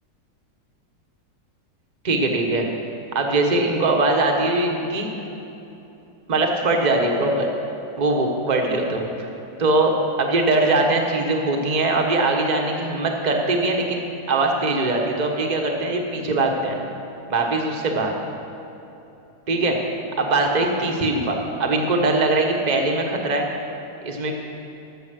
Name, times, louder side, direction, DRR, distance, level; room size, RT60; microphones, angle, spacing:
voice 1, 2.0-2.7 3.1-5.1 6.3-7.5 8.0-9.3 9.6-16.8 17.3-18.1 19.5-19.8 20.2-23.5 24.0-24.3, right 2 dB, 30° right, 2 dB, 0.9 m, -21 dB
14.0 x 7.0 x 6.4 m, 2.9 s
omnidirectional pair, 2.3 m